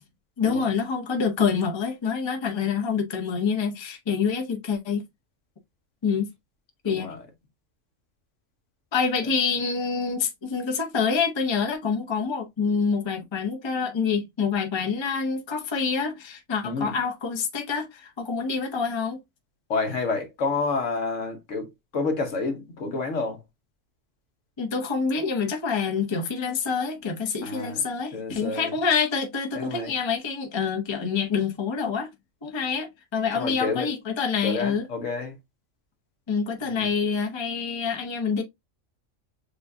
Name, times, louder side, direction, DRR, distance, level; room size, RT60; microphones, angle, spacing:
voice 1, 0.4-5.0 6.0-6.3 6.8-7.1 8.9-19.2 24.6-32.1 32.4-34.9 36.3-38.4, left 5 dB, 25° left, 0.7 m, -26 dB
voice 2, 6.8-7.2 16.6-16.9 19.7-21.7 21.9-23.4 27.4-27.8 28.1-28.7 29.5-29.9 33.3-33.9 34.4-35.4 36.7-36.9, left 3 dB, 70° left, 1.4 m, -29 dB
6.9 x 2.4 x 2.6 m
omnidirectional pair, 1.3 m